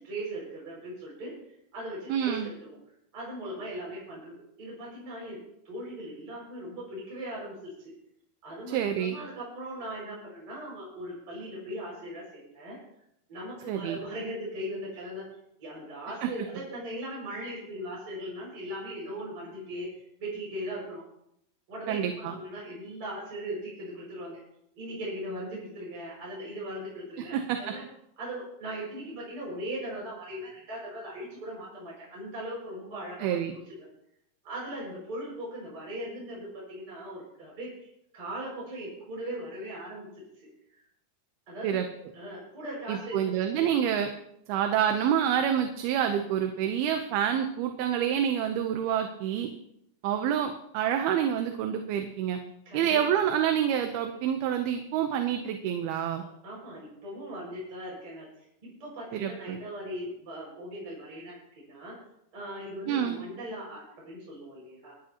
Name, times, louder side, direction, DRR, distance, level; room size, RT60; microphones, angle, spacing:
voice 1, 0.0-1.3 1.7-2.8 3.1-7.9 8.4-12.8 13.3-15.3 15.6-19.9 20.2-21.0 21.7-24.4 24.8-27.8 28.2-33.6 34.4-37.9 38.1-40.5 41.5-41.8 42.1-43.3 43.6-43.7 52.6-53.2 56.2-58.3 58.6-61.9 62.3-64.9, right 1 dB, 30° right, -6 dB, 6.6 m, -39 dB
voice 2, 2.1-2.5 8.7-9.2 13.7-14.0 21.9-22.3 27.3-27.6 33.2-33.5 41.6-41.9 42.9-44.1 44.5-49.5 50.0-52.4 52.7-56.2 59.1-59.6 62.9-63.2, right 9 dB, 80° right, 5 dB, 2.7 m, -27 dB
27.5 x 10.5 x 2.9 m, 0.76 s
omnidirectional pair, 4.6 m